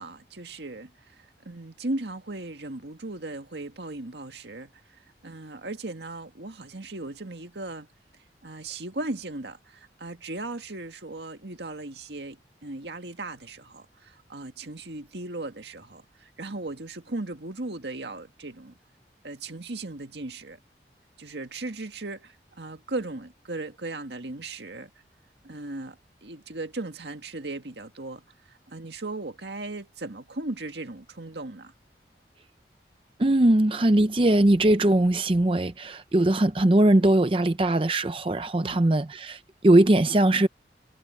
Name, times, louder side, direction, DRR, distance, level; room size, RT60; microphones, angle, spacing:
voice 1, 0.0-4.7 5.2-7.9 8.4-18.7 19.2-20.6 21.2-24.9 25.4-28.2 28.5-31.7 38.6-38.8, right 2 dB, 80° right, 1.9 m, -37 dB
voice 2, 33.2-40.5, right 1 dB, 30° right, 0.6 m, -20 dB
head